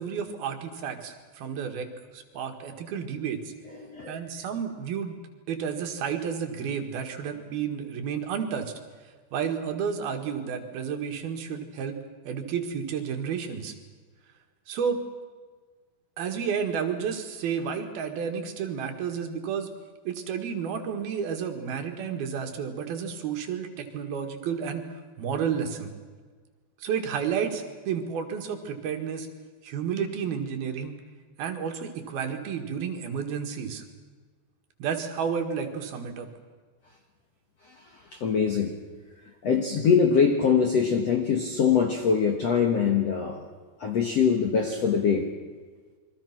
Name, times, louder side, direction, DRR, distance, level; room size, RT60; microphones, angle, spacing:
voice 1, 0.0-1.9 2.1-3.5 4.1-5.2 5.5-8.7 9.3-12.0 12.3-13.7 14.7-15.0 16.2-19.7 20.1-25.9 26.8-29.3 29.6-31.0 31.4-33.8 34.8-36.3, right 7 dB, 65° right, 4 dB, 3.6 m, -31 dB
voice 2, 3.7-4.2 38.1-38.8 39.4-43.5 43.8-45.3, left 6 dB, 60° left, 4 dB, 1.8 m, -23 dB
28.5 x 23.0 x 6.0 m, 1.5 s
omnidirectional pair, 4.9 m